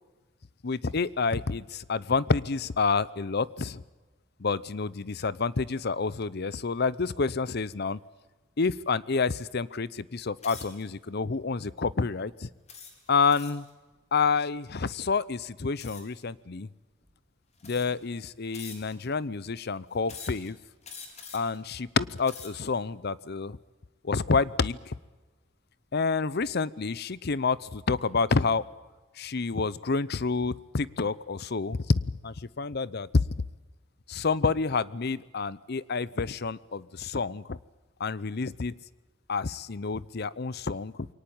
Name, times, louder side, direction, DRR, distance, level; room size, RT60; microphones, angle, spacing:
voice 1, 0.6-3.8 4.4-8.0 8.6-12.5 13.1-13.7 14.1-16.7 17.6-20.6 21.3-23.6 24.0-25.0 25.9-28.6 29.2-31.8 32.2-33.2 34.1-37.6 38.0-38.7 39.3-41.1, left 4 dB, 55° left, 19 dB, 0.7 m, -28 dB
sound 1, 10.4-10.8 11.5-11.7 12.7-13.7 15.8-16.2 17.0-17.1 17.6-18.1 18.5-19.1 20.0-20.5 20.8-21.6 22.1-22.7, left 5 dB, 35° left, 4.0 m, -45 dB
23.0 x 18.5 x 8.7 m, 1.2 s
head